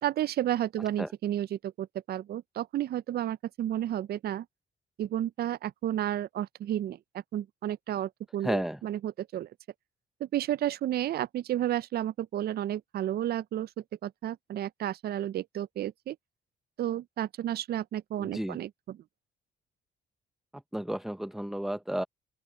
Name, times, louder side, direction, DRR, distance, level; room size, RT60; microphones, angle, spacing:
voice 1, 0.0-4.5 5.0-7.0 7.3-9.5 10.2-13.7 14.0-16.2 16.8-19.0, right 12 dB, 55° right, 0.4 m, -32 dB
voice 2, 8.4-8.8 18.2-18.6 20.7-22.0, right 1 dB, ahead, 0.7 m, -32 dB
open air
cardioid pair, 90°, 20 cm